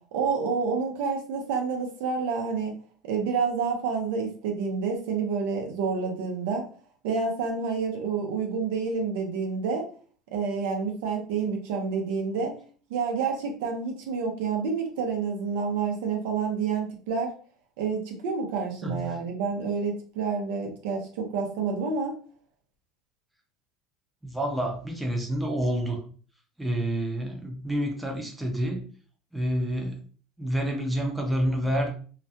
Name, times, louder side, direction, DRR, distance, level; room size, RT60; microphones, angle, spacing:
voice 1, 0.1-2.7 3.0-6.7 7.0-9.9 10.3-12.6 12.9-17.3 17.8-22.2, right 5 dB, 80° right, 2 dB, 0.7 m, -28 dB
voice 2, 18.8-19.2 24.2-26.0 26.6-28.9 29.3-30.0 30.4-31.9, right 1 dB, 5° right, 0 dB, 0.6 m, -28 dB
2.4 x 2.1 x 2.7 m, 0.42 s
supercardioid pair, 115°, 0 cm